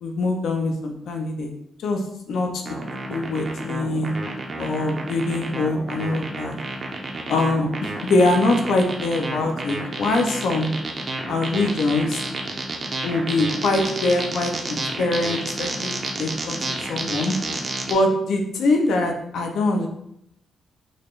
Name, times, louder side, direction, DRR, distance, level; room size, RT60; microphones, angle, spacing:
voice 1, 0.0-1.5 1.8-2.0 2.3-2.5 3.1-4.2 4.6-6.6 7.3-10.7 11.3-12.2 13.0-17.3 17.9-19.9, left 2 dB, 80° left, 3 dB, 0.6 m, -23 dB
sound 1, 2.7-17.9, right 2 dB, 35° right, 0.5 m, -30 dB
3.9 x 2.5 x 3.2 m, 0.77 s
cardioid pair, 140°, 0 cm